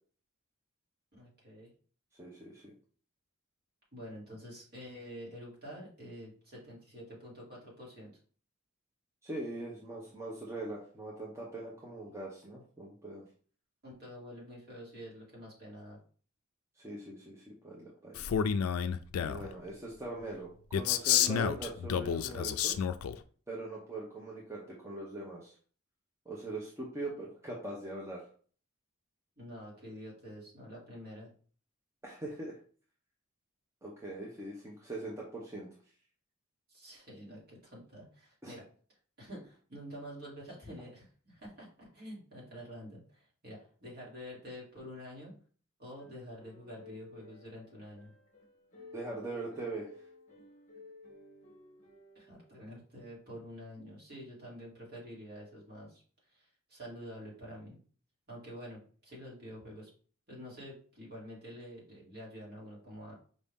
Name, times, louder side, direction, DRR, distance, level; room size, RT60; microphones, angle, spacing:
voice 1, 1.1-1.7 3.9-8.1 13.8-16.0 29.4-31.3 36.7-38.6 39.2-45.3 45.8-48.1 52.1-56.0 56.3-57.8 58.3-59.9 60.3-63.1, equal, 45° right, -5 dB, 2.4 m, -48 dB
voice 2, 2.2-2.7 9.2-13.2 16.8-18.3 19.2-22.7 23.5-25.5 26.3-28.2 32.0-32.5 33.8-35.7 38.4-38.5 48.9-49.9, right 2 dB, 15° right, -4 dB, 0.7 m, -42 dB
Male speech man speaking, 18.2-19.5 20.7-23.2, left 8 dB, 80° left, 0.3 m, -30 dB
sound 1, 45.9-52.9 53.4-53.8, left 3 dB, 35° left, 0.9 m, -55 dB
5.1 x 2.7 x 3.5 m, 0.43 s
head